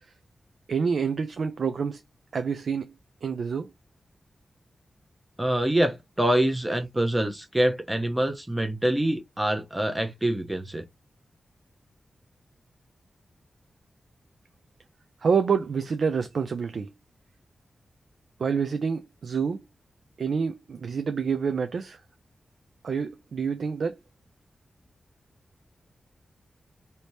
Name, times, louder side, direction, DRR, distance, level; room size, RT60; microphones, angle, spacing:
voice 1, 0.7-2.0 2.3-2.9 3.2-3.7 15.2-16.9 18.4-19.6 20.2-22.0 22.8-24.0, right 6 dB, 65° right, 0.4 m, -27 dB
voice 2, 5.4-10.8, right 1 dB, 10° right, 0.7 m, -25 dB
3.4 x 2.7 x 2.8 m
wide cardioid pair, 135°, 0 cm